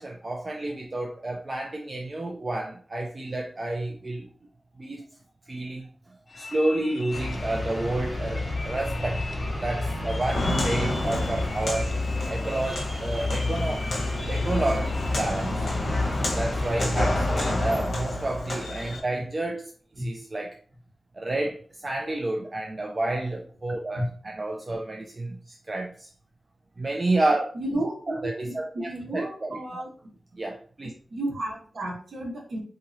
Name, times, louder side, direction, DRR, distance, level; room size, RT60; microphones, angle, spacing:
voice 1, 0.0-4.3 4.8-5.0 5.5-5.9 6.4-9.2 9.6-11.9 12.3-13.9 14.3-15.7 16.3-19.7 20.0-20.5 21.1-26.1 26.8-27.5 28.1-29.5 30.4-30.9, right 2 dB, 30° right, 0.4 m, -30 dB
sound 1, 6.3-17.5, left 3 dB, 40° left, 0.5 m, -43 dB
sound 2, 7.1-17.8, left 2 dB, 20° left, 1.1 m, -30 dB
Walk footsteps, 10.2-19.0, left 1 dB, 60° left, 1.1 m, -30 dB
voice 2, 27.5-29.9 31.1-32.6, right 1 dB, 70° right, 1.1 m, -32 dB
3.7 x 2.9 x 2.7 m
wide cardioid pair, 140°, 0 cm